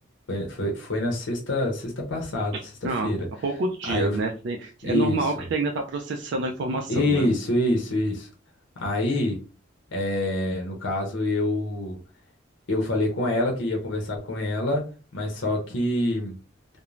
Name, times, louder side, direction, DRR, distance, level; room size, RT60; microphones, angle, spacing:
voice 1, 0.3-3.3 3.9-4.2 4.8-5.3 6.9-8.3 8.8-9.4 9.9-12.0 12.7-14.8 15.1-16.4, left 1 dB, 70° left, 0 dB, 0.6 m, -26 dB
voice 2, 2.5-3.1 3.4-7.3, right 2 dB, 60° right, 3 dB, 0.3 m, -28 dB
2.4 x 2.0 x 3.0 m, 0.35 s
head